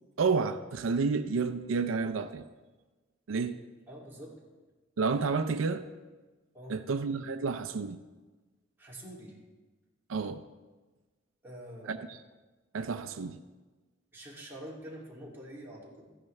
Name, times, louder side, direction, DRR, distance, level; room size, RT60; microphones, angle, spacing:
voice 1, 0.2-2.5 3.3-3.6 5.0-5.8 6.7-8.0 10.1-10.4 11.9-12.2 12.7-13.4, right 4 dB, 85° right, 10 dB, 0.5 m, -30 dB
voice 2, 3.9-4.4 6.5-6.8 8.8-9.4 11.4-12.1 14.1-16.2, right 1 dB, 10° right, -5 dB, 2.5 m, -46 dB
14.5 x 10.0 x 3.2 m, 1.2 s
head